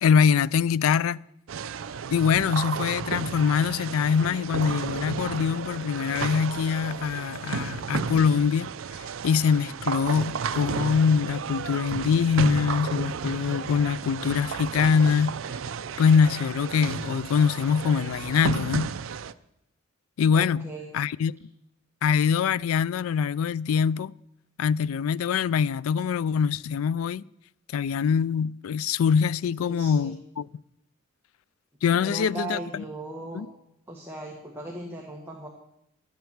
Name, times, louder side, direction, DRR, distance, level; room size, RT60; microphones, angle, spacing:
voice 1, 0.0-1.2 2.1-8.7 9.2-15.4 16.0-18.9 20.2-20.7 20.9-21.3 22.0-24.1 24.6-27.2 27.7-30.5 31.8-32.8 33.3-33.5, left 6 dB, 85° left, 0.3 m, -23 dB
sound 1, 1.5-19.3, right 6 dB, 70° right, 0.5 m, -33 dB
voice 2, 20.3-20.9 29.6-30.2 31.9-33.4 33.9-35.5, right 2 dB, 10° right, 1.5 m, -37 dB
11.0 x 9.2 x 7.1 m
head